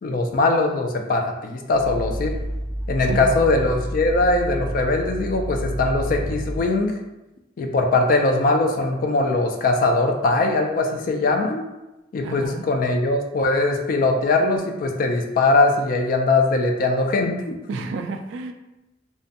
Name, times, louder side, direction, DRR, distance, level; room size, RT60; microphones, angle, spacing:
voice 1, 0.0-2.3 2.9-6.9 7.6-11.6 12.1-17.6, left 2 dB, 50° left, 3 dB, 0.3 m, -21 dB
Growling, 1.7-6.7, equal, 10° right, 1.0 m, -29 dB
voice 2, 12.2-12.7 17.7-18.5, right 3 dB, 70° right, 5 dB, 0.3 m, -30 dB
2.6 x 2.2 x 2.5 m, 0.99 s
head